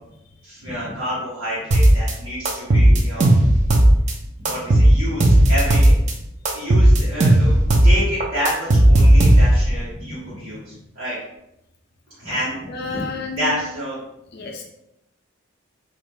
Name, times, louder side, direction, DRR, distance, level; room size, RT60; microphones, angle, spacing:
voice 1, 0.4-3.3 4.4-6.0 6.5-11.2 12.2-14.0, equal, 75° right, -10 dB, 1.1 m, -29 dB
sound 1, 1.7-2.1 2.5-4.1 4.5-6.1 6.5-9.7, right 1 dB, 35° right, 0.4 m, -13 dB
voice 2, 12.7-13.6 14.3-14.6, left 4 dB, 50° left, 1 dB, 0.4 m, -31 dB
2.5 x 2.4 x 3.2 m, 0.84 s
head